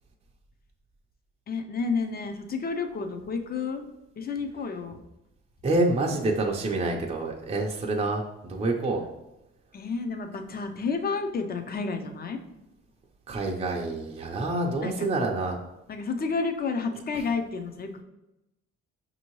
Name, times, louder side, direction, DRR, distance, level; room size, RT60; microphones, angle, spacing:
voice 1, 1.5-3.9 4.2-5.0 9.7-12.4 14.8-15.1 15.9-17.9, left 4 dB, 30° left, 6 dB, 0.5 m, -30 dB
voice 2, 5.6-9.0 13.3-15.6, right 2 dB, 20° right, 0 dB, 0.5 m, -27 dB
5.2 x 2.7 x 3.0 m, 0.93 s
cardioid pair, 90°, 30 cm